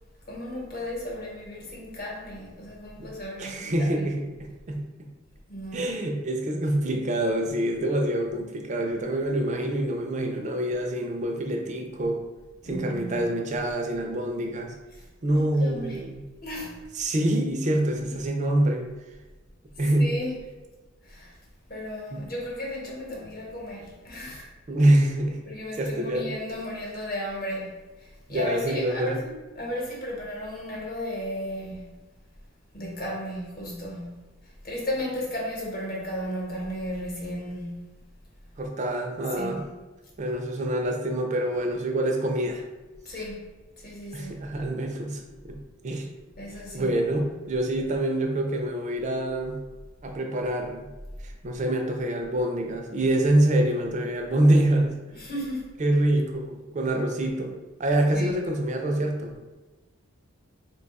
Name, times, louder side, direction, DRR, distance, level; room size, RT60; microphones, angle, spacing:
voice 1, 0.3-4.1 5.5-5.9 12.6-13.3 15.3-16.0 16.4-16.8 18.1-18.2 20.0-20.4 21.0-21.3 21.7-24.5 25.5-31.9 32.7-34.3 34.6-38.0 39.4-39.6 43.0-43.5 43.8-44.3 46.4-46.9 55.1-55.6 58.1-58.4, equal, 45° left, -3 dB, 0.9 m, -34 dB
voice 2, 3.4-4.9 5.7-12.2 12.6-14.7 15.2-16.2 16.9-18.9 19.8-20.1 22.1-22.2 24.7-25.4 25.7-26.3 28.3-29.2 38.6-39.6 40.2-42.6 44.1-45.6 45.8-46.1 46.7-49.6 50.0-50.9 51.2-55.0 55.8-57.5 57.8-59.3, right 1 dB, 35° right, 2 dB, 0.4 m, -26 dB
2.7 x 2.3 x 4.0 m, 1.2 s
head